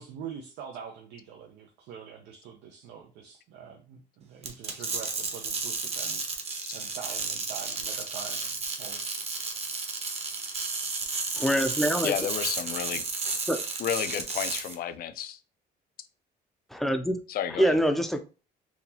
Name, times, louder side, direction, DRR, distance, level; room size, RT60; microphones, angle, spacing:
voice 1, 0.0-6.2 6.7-9.0, right 7 dB, 80° right, 0.7 m, -44 dB
sound 1, 4.4-14.7, right 4 dB, 40° right, 1.0 m, -32 dB
voice 2, 11.4-12.1 13.5-13.6 16.7-17.2 17.6-18.2, equal, ahead, 0.5 m, -25 dB
voice 3, 12.0-13.0 13.8-15.4 17.3-17.7, left 10 dB, 60° left, 0.5 m, -31 dB
4.2 x 2.8 x 2.8 m
cardioid pair, 110°, 17 cm